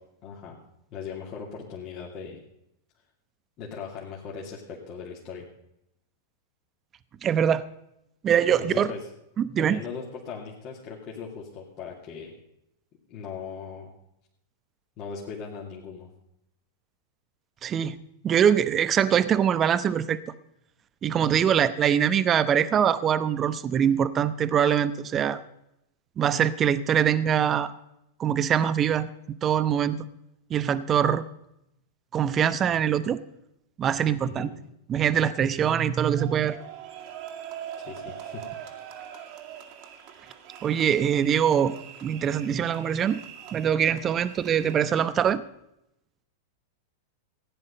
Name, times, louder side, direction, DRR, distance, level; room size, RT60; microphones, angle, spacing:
voice 1, 0.2-0.6 0.9-2.4 3.6-5.5 8.6-9.0 9.6-12.4 13.1-13.9 15.0-16.1 21.2-21.5 34.2-34.5 37.8-38.5, left 6 dB, 45° left, -4 dB, 2.7 m, -39 dB
voice 2, 7.2-7.7 8.2-8.9 9.4-9.8 17.6-18.0 18.2-20.2 21.0-25.4 26.2-27.7 28.2-30.0 30.5-31.2 32.1-33.2 33.8-34.5 34.9-36.6 40.6-43.2 43.5-45.4, right 8 dB, 30° right, 14 dB, 0.9 m, -23 dB
sound 1, 36.1-45.1, right 10 dB, 50° right, 2.1 m, -43 dB
15.5 x 9.8 x 5.3 m, 0.82 s
hypercardioid pair, 100°, 0 cm